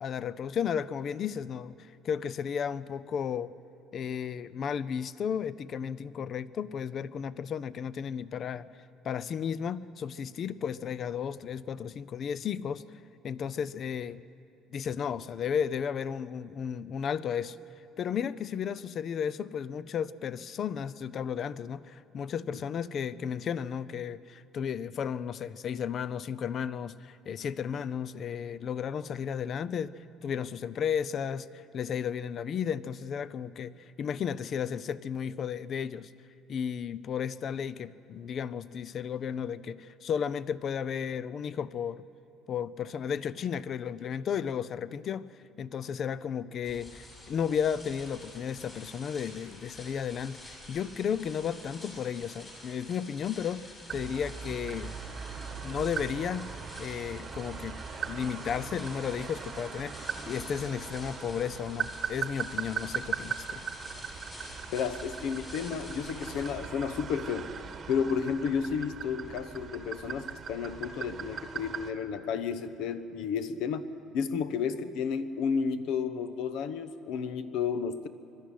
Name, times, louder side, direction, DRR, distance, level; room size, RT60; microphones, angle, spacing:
voice 1, 0.0-3.5 3.9-8.6 9.0-12.8 13.2-14.2 14.7-17.6 18.0-29.9 30.2-36.1 36.5-42.0 42.5-55.0 55.6-56.5 56.8-57.8 58.1-63.6, left 7 dB, 40° left, 18 dB, 0.5 m, -34 dB
sound 1, 46.6-66.5, left 1 dB, 20° left, 5.5 m, -48 dB
sound 2, 53.9-71.9, right 6 dB, 30° right, 1.2 m, -39 dB
voice 2, 64.7-67.5 67.9-78.1, left 6 dB, 70° left, 13 dB, 1.0 m, -32 dB
21.5 x 13.0 x 9.9 m, 2.8 s
cardioid pair, 155°, 0 cm